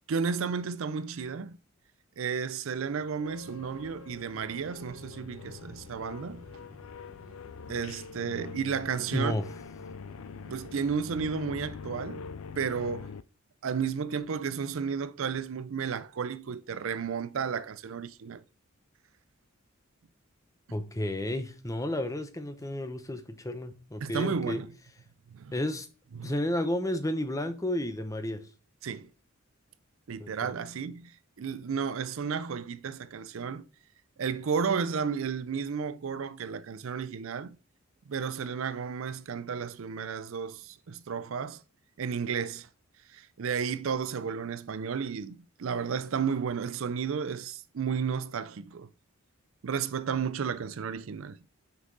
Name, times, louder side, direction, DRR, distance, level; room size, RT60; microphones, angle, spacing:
voice 1, 0.1-1.6 2.2-6.4 7.7-9.3 10.5-12.3 12.6-13.1 13.6-18.4 24.0-24.7 25.3-25.5 26.1-26.3 28.8-29.1 30.1-31.1 31.4-33.6 34.2-37.5 38.1-41.6 42.0-42.7 43.1-48.9 49.6-51.4, right 6 dB, 70° right, 0.4 m, -33 dB
sound 1, 3.1-13.2, left 5 dB, 75° left, 0.4 m, -44 dB
sound 2, 3.4-10.7, equal, 85° right, 1.9 m, -54 dB
voice 2, 9.1-9.5 20.7-24.6 25.5-25.9 26.2-28.4 30.2-30.5, left 1 dB, 15° left, 0.7 m, -32 dB
6.1 x 5.6 x 3.9 m
head